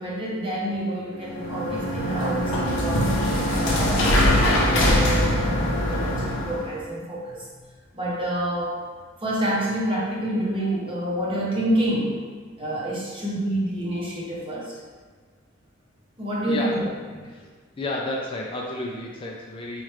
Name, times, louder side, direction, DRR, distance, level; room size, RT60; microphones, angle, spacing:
voice 1, 0.0-3.1 3.5-7.5 7.9-8.8 9.2-12.2 12.6-14.7 16.2-17.3, right 1 dB, 25° right, -5 dB, 0.8 m, -28 dB
sound 1, 1.2-6.7, left 1 dB, 65° left, 0.6 m, -22 dB
voice 2, 16.5-16.8 17.3-17.5 17.8-19.8, left 1 dB, 25° left, -2 dB, 0.3 m, -31 dB
4.2 x 2.4 x 3.2 m, 1.5 s
head